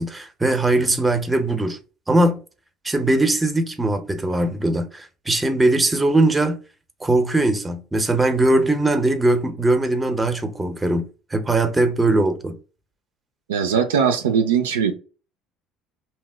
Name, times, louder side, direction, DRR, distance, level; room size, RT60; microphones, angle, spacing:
voice 1, 0.0-1.8 2.1-2.4 2.8-6.6 7.0-12.6, right 2 dB, 15° right, 0.6 m, -20 dB
voice 2, 13.5-14.9, right 7 dB, 85° right, 0.3 m, -20 dB
2.8 x 2.1 x 3.3 m
hypercardioid pair, 65°, 0 cm